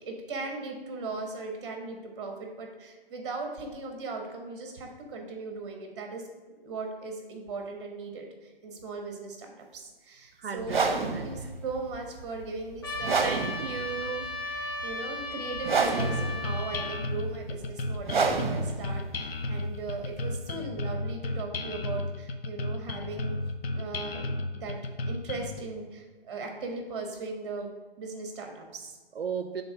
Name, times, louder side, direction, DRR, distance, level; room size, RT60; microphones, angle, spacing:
voice 1, 0.1-6.2 6.5-13.3 14.0-14.1 14.4-23.3 23.7-24.8 25.1-27.7 28.0-29.0, right 3 dB, 30° right, 2 dB, 1.3 m, -38 dB
voice 2, 10.4-10.8 11.1-11.3 13.2-14.3 29.2-29.6, right 6 dB, 75° right, 8 dB, 0.6 m, -35 dB
sound 1, 10.6-20.5, right 4 dB, 55° right, 0.9 m, -30 dB
Trumpet, 12.8-17.0, left 2 dB, 25° left, 0.6 m, -36 dB
sound 2, 16.0-25.6, left 2 dB, 75° left, 0.7 m, -33 dB
5.3 x 3.9 x 5.8 m, 1.4 s
figure-of-eight pair, 150°, 29 cm